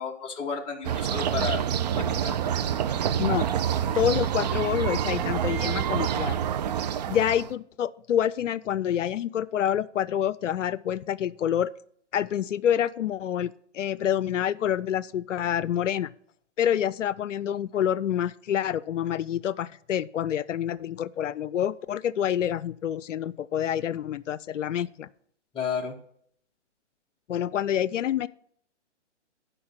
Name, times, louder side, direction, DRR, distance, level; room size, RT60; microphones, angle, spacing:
voice 1, 0.0-1.6 1.9-2.4 25.5-26.0, left 6 dB, 15° left, 1 dB, 1.0 m, -32 dB
sound 1, 0.8-7.5, right 9 dB, 35° right, 0.5 m, -27 dB
voice 2, 3.9-6.4 7.1-11.7 12.1-16.1 16.6-25.1 27.3-28.3, left 10 dB, 85° left, 19 dB, 0.5 m, -27 dB
12.0 x 5.2 x 5.7 m, 0.64 s
hypercardioid pair, 140°, 36 cm